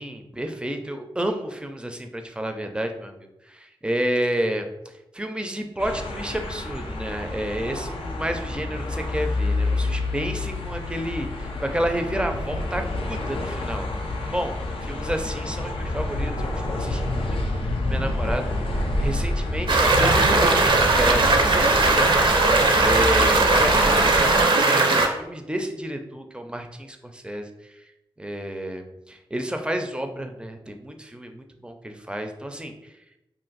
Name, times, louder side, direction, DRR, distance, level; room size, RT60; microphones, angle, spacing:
voice 1, 0.0-13.9 14.3-14.6 14.8-17.4 17.8-18.7 19.0-22.4 22.8-27.8 28.2-33.0, right 1 dB, 10° right, 5 dB, 0.4 m, -30 dB
sound 1, 5.8-24.4, left 2 dB, 90° left, 0.5 m, -28 dB
sound 2, 19.7-25.1, right 3 dB, 65° right, 0.5 m, -18 dB
2.5 x 2.5 x 3.9 m, 0.91 s
wide cardioid pair, 75°, 9 cm